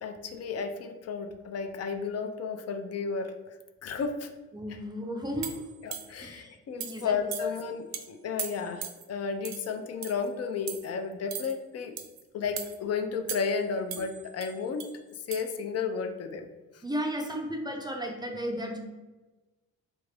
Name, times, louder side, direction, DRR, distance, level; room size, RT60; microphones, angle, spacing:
voice 1, 0.0-3.3 3.8-4.3 5.8-11.9 12.3-14.8 15.3-16.5, left 5 dB, 55° left, 5 dB, 0.5 m, -33 dB
voice 2, 4.5-5.7 6.2-7.5 16.8-18.8, equal, 15° right, 3 dB, 0.4 m, -34 dB
sound 1, 5.4-6.3 6.8-7.0 7.3-7.6 7.9-8.1 8.4-9.0 9.5-9.7 10.0-10.3 10.7-10.9 11.3-11.5 12.0-12.2 12.6-12.8 13.3-13.6 13.9-14.9 15.3-15.4, right 8 dB, 65° right, 0.5 m, -38 dB
3.4 x 2.5 x 3.3 m, 1.2 s
cardioid pair, 90°, 30 cm